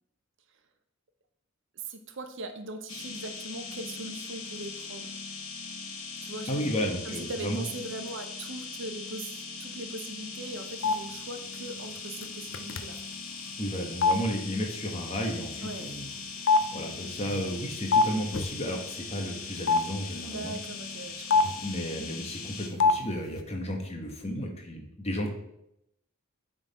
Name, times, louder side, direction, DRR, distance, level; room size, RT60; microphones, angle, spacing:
voice 1, 1.8-5.1 6.2-13.0 15.6-15.9 20.3-21.6, right 2 dB, 55° right, 7 dB, 0.7 m, -40 dB
sound 1, 2.9-22.7, left 4 dB, 75° left, 1.1 m, -40 dB
voice 2, 6.5-7.6 13.6-16.1 16.7-20.5 21.6-25.3, equal, 30° left, 2 dB, 1.2 m, -33 dB
sound 2, 10.8-10.9 12.2-12.3 12.5-13.0 14.0-14.1 15.9-16.0 16.5-18.1 18.3-18.5 19.7-19.8 21.3-21.6 22.8-23.0 23.2-23.4, left 4 dB, 60° left, 0.5 m, -23 dB
9.0 x 3.9 x 4.2 m, 0.81 s
head